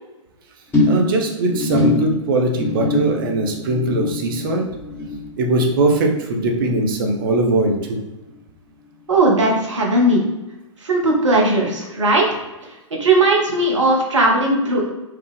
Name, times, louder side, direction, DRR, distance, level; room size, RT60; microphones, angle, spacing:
sound 1, 0.7-7.3 7.6-8.0 8.3-8.4, left 2 dB, 15° left, 1.1 m, -24 dB
voice 1, 0.8-4.7 5.4-8.0, right 2 dB, 45° right, 3 dB, 0.8 m, -20 dB
voice 2, 9.1-10.2 10.8-12.4 13.0-14.9, right 2 dB, 65° right, -1 dB, 1.1 m, -17 dB
4.7 x 2.4 x 3.3 m, 1.1 s
figure-of-eight pair, 110°, 16 cm